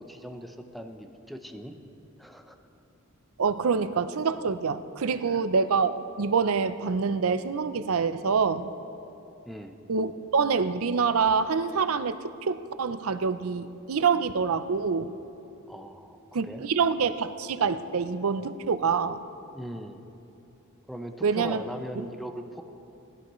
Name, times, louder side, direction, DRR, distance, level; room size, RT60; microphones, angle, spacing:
voice 1, 0.0-1.7 2.2-2.6 5.3-5.4 9.5-9.7 15.7-16.6 19.5-20.0 20.9-22.6, equal, ahead, 5 dB, 0.7 m, -40 dB
voice 2, 3.4-8.7 9.9-15.1 16.3-19.2 21.2-21.6, right 5 dB, 85° right, 12 dB, 0.5 m, -26 dB
20.0 x 16.0 x 3.1 m, 2.8 s
head